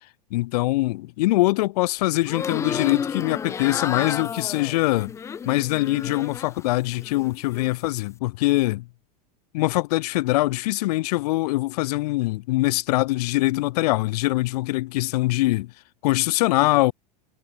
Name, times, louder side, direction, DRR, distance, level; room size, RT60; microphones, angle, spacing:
voice 1, 0.3-5.1 5.5-8.9 9.5-15.7 16.0-16.9, left 20 dB, 75° left, 0.5 m, -23 dB
sound 1, 2.2-6.7 7.0-7.7, left 7 dB, 15° left, 0.3 m, -32 dB
supercardioid pair, 125°, 20 cm